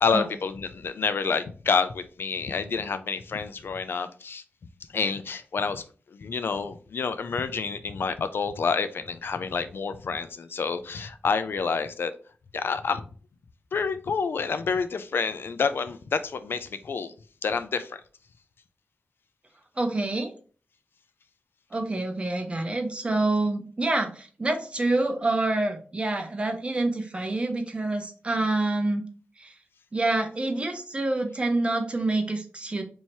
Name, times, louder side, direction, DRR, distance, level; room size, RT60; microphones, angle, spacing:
voice 1, 0.0-4.4 4.9-12.1 12.5-13.1 13.7-17.1 17.4-18.0, left 5 dB, 70° left, 11 dB, 0.4 m, -28 dB
voice 2, 19.8-20.3 21.7-29.0 29.4-29.5 29.9-32.8, right 2 dB, 30° right, 4 dB, 0.8 m, -27 dB
3.0 x 2.7 x 4.4 m, 0.40 s
wide cardioid pair, 90°, 4 cm